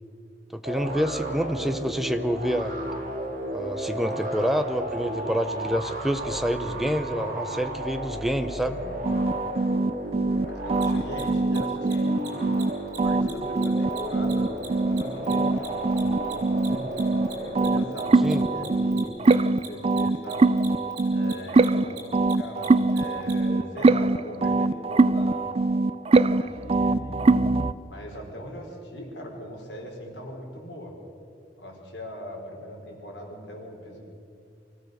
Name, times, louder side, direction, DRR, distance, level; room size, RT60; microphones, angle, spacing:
voice 1, 0.5-2.7 3.5-8.8 18.2-18.4, equal, ahead, 9 dB, 0.8 m, -27 dB
sound 1, 0.6-19.1, right 1 dB, 50° right, 2.7 m, -34 dB
voice 2, 8.3-8.9 10.4-12.5 13.0-20.6 21.1-25.5 26.1-27.5 27.9-30.9 31.6-34.0, equal, 80° left, 0 dB, 4.8 m, -40 dB
sound 2, 9.0-12.7 13.0-17.3 17.6-27.7, right 3 dB, 35° right, 0.4 m, -23 dB
Mechanisms, 10.7-10.8 11.1-11.2 11.5-11.6 11.8-11.9 12.2-12.3 12.5-12.6 12.9-13.0 13.3-16.0 16.2-23.3, right 8 dB, 65° right, 4.5 m, -42 dB
24.5 x 15.5 x 6.7 m, 2.4 s
head